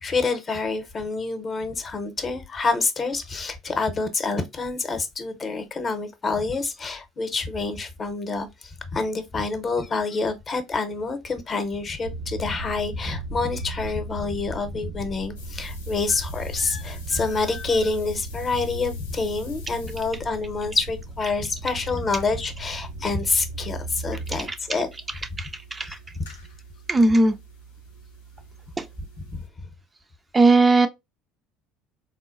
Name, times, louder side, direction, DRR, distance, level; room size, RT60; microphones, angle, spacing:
voice 1, 0.0-24.9 25.8-25.9 29.3-29.4, left 3 dB, 35° left, 0.7 m, -27 dB
sound 1, 12.0-24.4, right 1 dB, 80° right, 0.7 m, -36 dB
sound 2, 15.4-29.5, right 2 dB, 90° left, 0.5 m, -47 dB
voice 2, 24.5-24.8 25.4-26.0 26.9-27.4 28.8-28.9 30.3-30.9, right 2 dB, 25° right, 0.3 m, -19 dB
3.7 x 2.2 x 2.4 m
hypercardioid pair, 65°, 0 cm